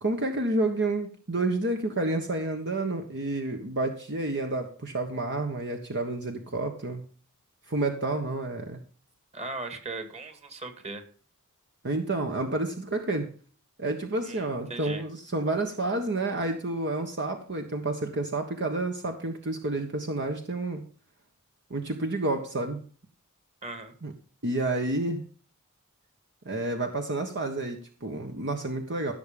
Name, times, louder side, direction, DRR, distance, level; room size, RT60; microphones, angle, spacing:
voice 1, 0.0-7.0 7.7-8.8 11.8-13.3 13.8-20.8 21.7-22.8 24.0-24.1 24.4-25.2 26.4-29.1, right 2 dB, 55° right, 4 dB, 1.4 m, -29 dB
voice 2, 9.3-11.0 14.2-15.0 23.6-23.9, right 3 dB, 30° right, 8 dB, 2.3 m, -38 dB
16.0 x 7.0 x 5.3 m, 0.41 s
head